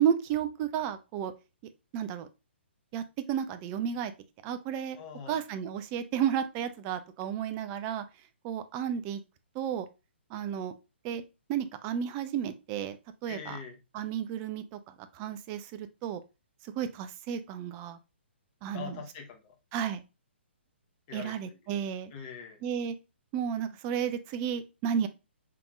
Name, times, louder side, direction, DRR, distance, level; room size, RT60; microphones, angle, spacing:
voice 1, 0.0-1.3 1.9-2.3 2.9-4.1 4.4-5.0 5.3-8.0 8.4-9.2 9.5-9.9 10.3-10.7 11.0-11.2 11.5-13.0 13.2-13.6 13.9-16.2 16.6-18.0 18.6-19.0 19.7-20.0 21.1-22.1 22.6-22.9 23.3-25.1, right 9 dB, 25° right, 11 dB, 0.4 m, -32 dB
voice 2, 5.0-5.4 13.3-13.8 18.7-19.5 21.1-21.6 22.1-22.6, left 6 dB, 30° left, 2 dB, 0.9 m, -43 dB
4.7 x 3.5 x 2.4 m, 0.27 s
figure-of-eight pair, 125°, 6 cm